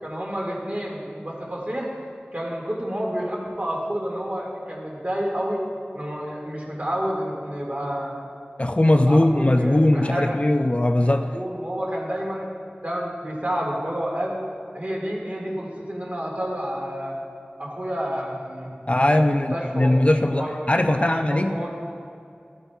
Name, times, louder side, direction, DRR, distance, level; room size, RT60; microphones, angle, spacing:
voice 1, 0.0-1.9 2.3-5.6 5.9-8.1 8.6-8.7 9.1-10.4 11.0-12.5 12.8-14.4 14.7-17.2 17.6-20.5 20.9-21.7, equal, 40° right, -3 dB, 1.9 m, -30 dB
voice 2, 8.6-11.3 18.9-21.6, left 1 dB, 35° left, 6 dB, 0.3 m, -20 dB
14.0 x 8.0 x 2.3 m, 2.5 s
wide cardioid pair, 45°, 4 cm